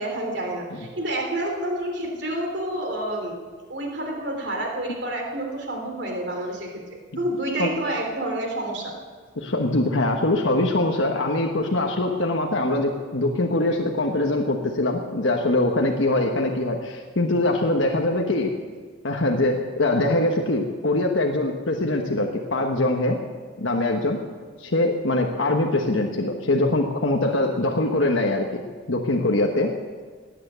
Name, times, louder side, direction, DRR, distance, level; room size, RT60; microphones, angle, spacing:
voice 1, 0.0-3.4 3.7-6.7 7.2-8.9, right 1 dB, 55° right, 2 dB, 3.2 m, -28 dB
voice 2, 9.4-18.5 19.0-23.2 23.6-24.2 24.6-28.6 28.9-29.7, left 2 dB, 70° left, 2 dB, 1.3 m, -23 dB
17.5 x 9.8 x 8.1 m, 1.5 s
head